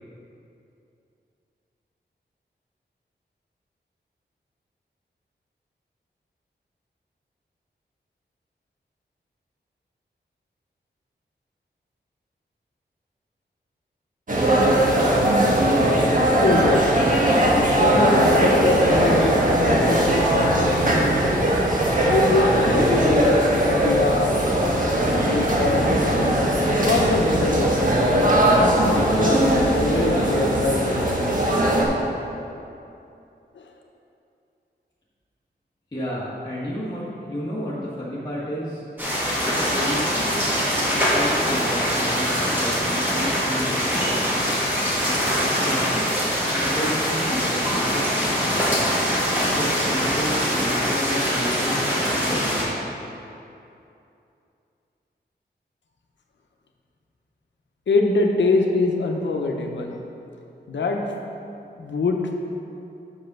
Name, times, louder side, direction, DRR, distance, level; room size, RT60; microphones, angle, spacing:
sound 1, 14.3-31.8, right 1 dB, 50° right, 1.4 m, -19 dB
voice 1, 16.4-16.9 17.5-21.2 22.0-24.3 25.1-26.4 26.8-27.7 28.5-31.3 33.5-33.6 57.9-59.9 60.7-61.0 61.8-62.3, left 3 dB, 85° left, 2 dB, 0.8 m, -24 dB
sound 2, 18.8-31.0, equal, 30° right, 1.0 m, -39 dB
voice 2, 35.9-38.8 39.5-40.3 40.9-44.6 45.3-46.0 46.5-48.9 49.5-52.8, equal, 20° left, -8 dB, 1.4 m, -31 dB
sound 3, 39.0-52.6, equal, 10° right, 2.0 m, -23 dB
6.7 x 5.3 x 6.0 m, 2.7 s
wide cardioid pair, 85°, 18 cm